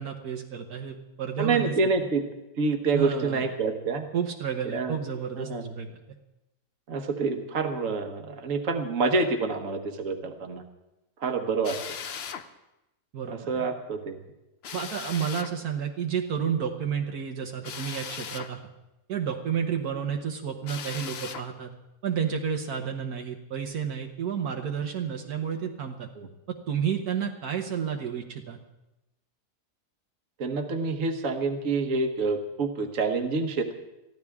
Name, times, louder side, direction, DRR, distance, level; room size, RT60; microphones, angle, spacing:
voice 1, 0.0-1.9 2.9-3.5 4.1-6.0 13.1-13.7 14.7-18.6 19.1-21.7 22.0-26.1 26.5-28.6, right 7 dB, 70° right, 3 dB, 1.6 m, -31 dB
voice 2, 1.4-2.2 2.6-4.1 4.7-4.9 5.4-5.6 6.9-10.6 11.2-11.7 13.3-14.2 26.2-26.3 30.4-33.7, right 4 dB, 55° right, 6 dB, 1.6 m, -27 dB
Drill, 11.6-12.5 14.6-15.5 17.6-18.5 20.6-21.5, left 7 dB, 50° left, 0.8 m, -38 dB
23.0 x 14.5 x 3.6 m, 0.94 s
omnidirectional pair, 1.7 m